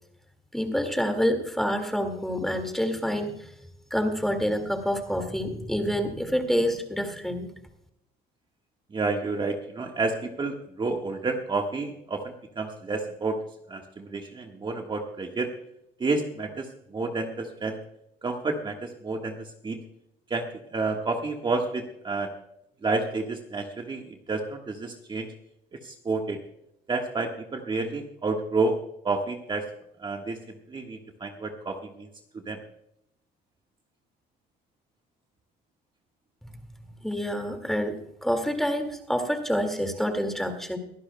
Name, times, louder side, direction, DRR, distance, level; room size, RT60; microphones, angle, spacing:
voice 1, 0.5-3.5 3.9-7.5 36.4-36.6 37.0-40.8, equal, ahead, 6 dB, 2.0 m, -27 dB
voice 2, 8.9-13.4 13.7-15.5 16.0-17.8 18.2-19.8 20.3-20.5 20.7-22.3 22.8-25.3 25.8-26.4 26.9-28.8 29.0-29.7 30.0-30.4 30.7-32.1 32.4-32.6, right 3 dB, 30° right, 3 dB, 1.4 m, -30 dB
23.5 x 11.5 x 2.2 m, 0.77 s
cardioid pair, 110°, 17 cm